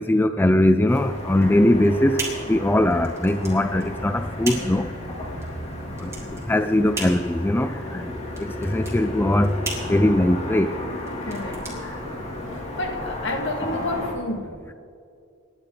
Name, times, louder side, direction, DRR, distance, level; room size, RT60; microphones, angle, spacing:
voice 1, 0.0-4.9 6.0-6.1 6.5-8.1 8.4-9.6 9.8-10.8, left 1 dB, 10° left, 9 dB, 0.4 m, -20 dB
Car passing by / Traffic noise roadway noise, 0.9-14.1, left 1 dB, 30° left, 2.8 m, -33 dB
sound 1, 1.3-12.6, right 2 dB, 15° right, 3.5 m, -37 dB
voice 2, 11.2-11.7 12.5-14.5, left 2 dB, 60° left, 4 dB, 2.0 m, -30 dB
28.5 x 11.0 x 3.9 m, 2.5 s
head